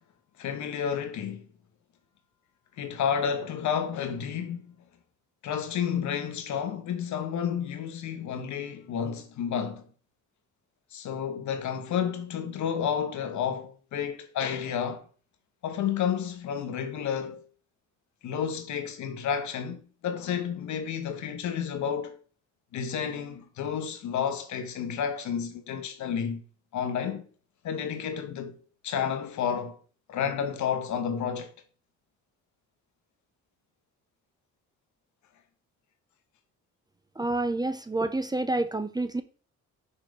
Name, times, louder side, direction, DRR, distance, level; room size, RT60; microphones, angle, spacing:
voice 1, 0.4-1.5 2.8-4.7 5.4-9.9 10.9-15.1 15.6-17.4 18.2-22.2 22.7-26.4 26.7-27.3 27.6-28.5 28.8-29.8 30.1-31.5, left 8 dB, 70° left, 1.1 m, -31 dB
voice 2, 37.2-39.2, right 2 dB, 15° right, 0.5 m, -28 dB
4.9 x 4.3 x 5.2 m
cardioid pair, 90°, 30 cm